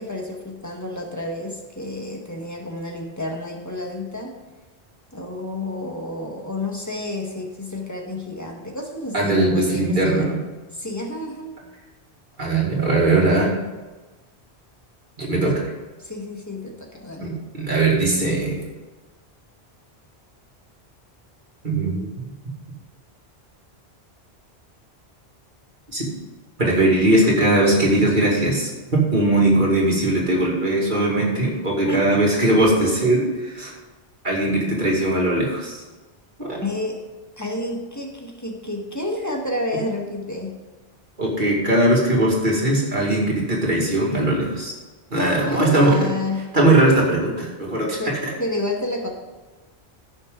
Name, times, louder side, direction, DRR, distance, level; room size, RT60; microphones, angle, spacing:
voice 1, 0.0-4.4 5.1-10.4 10.7-11.5 15.4-15.7 16.0-17.3 31.9-32.2 36.6-37.0 37.4-40.6 45.1-46.5 48.0-49.1, left 2 dB, 15° left, 0 dB, 1.8 m, -30 dB
voice 2, 9.1-10.4 12.4-13.5 15.2-15.6 17.2-18.6 21.6-22.3 25.9-26.1 26.6-33.7 34.2-35.8 36.4-36.6 41.2-44.7 45.1-46.1 46.5-48.3, right 1 dB, 50° right, -3 dB, 2.6 m, -20 dB
15.5 x 6.6 x 3.9 m, 1.2 s
omnidirectional pair, 1.1 m